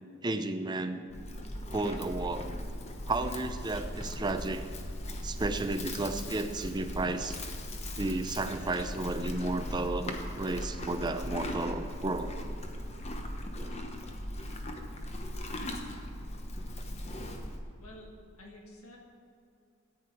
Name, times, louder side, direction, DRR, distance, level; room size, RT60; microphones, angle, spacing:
voice 1, 0.2-1.1 1.7-2.5 3.0-4.6 5.2-7.4 8.0-12.4 13.5-13.8, right 2 dB, 20° right, 8 dB, 0.5 m, -33 dB
Livestock farm animals working animals, 1.1-17.6, left 1 dB, 30° left, 0.9 m, -38 dB
voice 2, 17.8-19.0, left 1 dB, 85° left, -1 dB, 1.9 m, -50 dB
13.5 x 8.7 x 4.5 m, 2.6 s
head